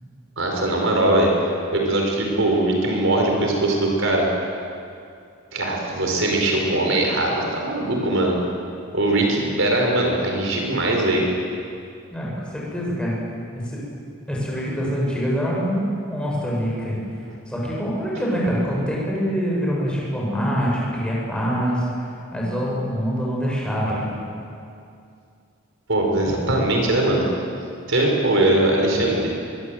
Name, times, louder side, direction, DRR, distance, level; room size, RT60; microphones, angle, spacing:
voice 1, 0.4-1.3 1.7-4.3 5.5-8.4 8.9-11.3 25.9-27.3 27.9-29.3, right 1 dB, 65° right, 0 dB, 5.0 m, -20 dB
voice 2, 12.1-13.1 13.6-13.8 14.3-17.0 17.5-21.8 22.3-24.2, equal, 5° left, -5 dB, 7.1 m, -25 dB
24.0 x 23.0 x 7.9 m, 2.4 s
head